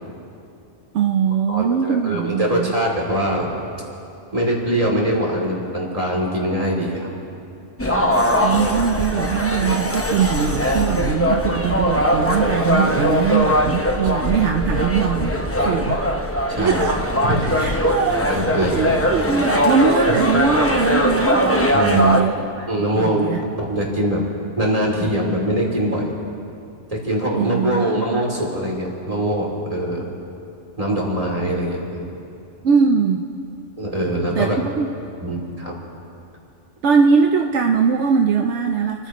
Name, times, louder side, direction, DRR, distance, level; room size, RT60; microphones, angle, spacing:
voice 1, 0.9-2.7 8.4-15.3 15.7-16.0 16.6-17.0 17.3-22.7 22.9-23.4 27.3-28.2 32.6-33.2 34.4-34.9 36.8-39.1, right 6 dB, 75° right, 4 dB, 1.0 m, -21 dB
voice 2, 1.5-3.5 4.3-7.1 7.8-8.1 15.3-15.8 16.5-16.8 17.2-17.5 18.2-18.9 21.7-22.1 22.7-23.3 23.6-24.2 24.6-26.1 26.9-30.1 30.8-32.1 33.8-34.6 35.2-35.7, equal, 30° right, -3 dB, 3.1 m, -23 dB
sound 1, 7.8-22.2, equal, 15° left, 0.8 m, -20 dB
29.0 x 14.5 x 3.1 m, 2.7 s
omnidirectional pair, 1.2 m